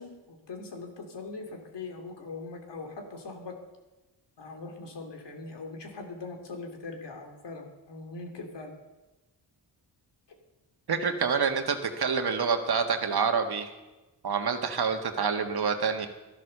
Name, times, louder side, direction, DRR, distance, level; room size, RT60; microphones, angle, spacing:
voice 1, 0.0-3.6 4.4-8.7, left 3 dB, 65° left, 3 dB, 2.9 m, -41 dB
voice 2, 10.9-13.7 14.2-16.1, right 5 dB, 55° right, 6 dB, 1.7 m, -27 dB
13.5 x 11.0 x 6.8 m, 1.1 s
cardioid pair, 70°, 46 cm